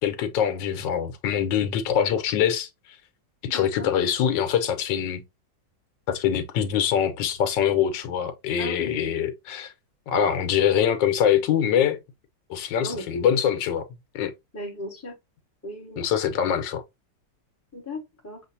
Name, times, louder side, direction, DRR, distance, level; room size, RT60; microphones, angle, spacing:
voice 1, 0.0-2.7 3.5-5.2 6.1-9.7 10.1-12.0 12.5-13.8 14.1-14.3 16.0-16.8, left 9 dB, 80° left, 1.5 m, -24 dB
voice 2, 3.5-3.9 8.6-9.1 12.8-13.4 14.5-15.1 15.6-16.0 17.7-18.4, left 1 dB, 10° left, 1.1 m, -36 dB
7.0 x 2.5 x 2.7 m
omnidirectional pair, 1.9 m